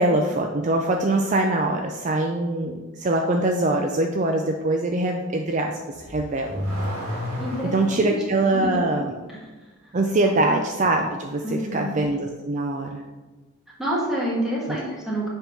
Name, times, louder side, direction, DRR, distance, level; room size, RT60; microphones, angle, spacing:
voice 1, 0.0-6.6 7.6-9.1 9.9-13.0 14.7-14.8, right 2 dB, 35° right, 3 dB, 0.4 m, -23 dB
Car / Accelerating revving vroom, 5.9-8.2, equal, 80° right, 2.1 m, -30 dB
voice 2, 7.4-8.1 8.5-8.9 9.3-9.4 9.8-9.9 10.4-10.6 11.4-12.0 13.8-15.3, equal, ahead, -6 dB, 1.6 m, -28 dB
7.2 x 3.6 x 5.3 m, 1.2 s
head